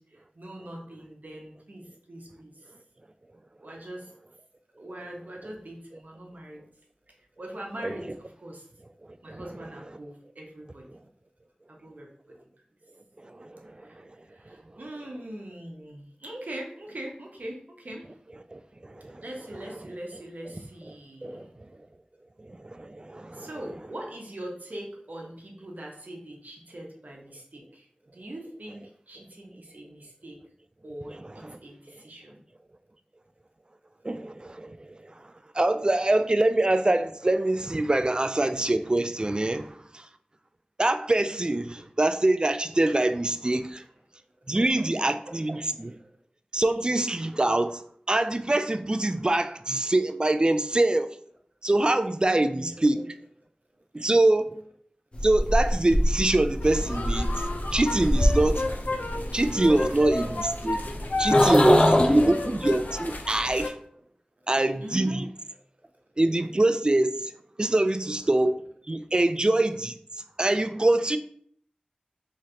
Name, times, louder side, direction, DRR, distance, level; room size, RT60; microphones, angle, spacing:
voice 1, 0.0-2.7 3.6-4.1 4.8-6.6 7.4-8.7 9.2-11.1 11.7-12.4 13.8-18.1 19.2-21.5 23.3-27.9 28.1-30.4 30.8-32.4 45.2-45.3 45.6-46.0 52.2-53.0 62.0-62.4 64.8-65.2, right 1 dB, 70° right, 1.0 m, -42 dB
voice 2, 13.2-13.8 18.5-19.2 21.2-21.5 22.4-23.5 31.4-31.6 34.0-35.1 35.5-40.1 40.8-43.8 44.5-46.0 46.5-47.8 48.1-51.1 51.6-53.0 53.9-54.6 55.2-58.7 59.3-60.8 61.2-63.8 64.5-65.2 66.2-67.3 67.6-70.0 70.4-71.2, right 2 dB, 30° right, 0.3 m, -24 dB
sound 1, 55.1-62.3, equal, 35° left, 0.6 m, -24 dB
sound 2, 56.6-63.7, left 2 dB, 85° left, 0.5 m, -32 dB
3.9 x 3.1 x 2.8 m
wide cardioid pair, 50°, 3 cm